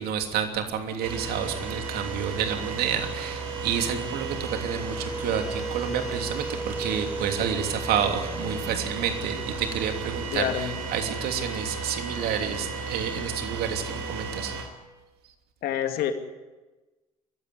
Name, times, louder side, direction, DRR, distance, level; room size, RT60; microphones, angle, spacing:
voice 1, 0.0-14.5, right 8 dB, 55° right, 5 dB, 3.0 m, -29 dB
sound 1, 1.0-14.6, right 4 dB, 75° right, 4.2 m, -33 dB
voice 2, 10.3-10.7 15.6-16.1, left 10 dB, 55° left, 6 dB, 2.4 m, -27 dB
23.5 x 15.0 x 9.8 m, 1.2 s
figure-of-eight pair, 60°, 19 cm